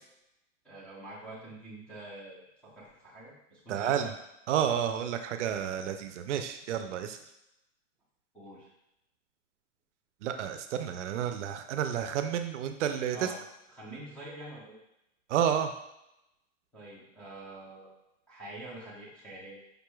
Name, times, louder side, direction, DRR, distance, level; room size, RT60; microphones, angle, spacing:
voice 1, 0.6-4.1 8.3-8.7 13.1-13.4 13.7-14.8 16.7-17.9 18.3-19.6, right 1 dB, 5° left, -9 dB, 0.5 m, -46 dB
voice 2, 3.7-4.1 4.5-7.2 10.2-13.3 15.3-15.7, right 9 dB, 70° right, 7 dB, 0.5 m, -30 dB
5.1 x 3.0 x 2.3 m, 0.85 s
hypercardioid pair, 155°, 38 cm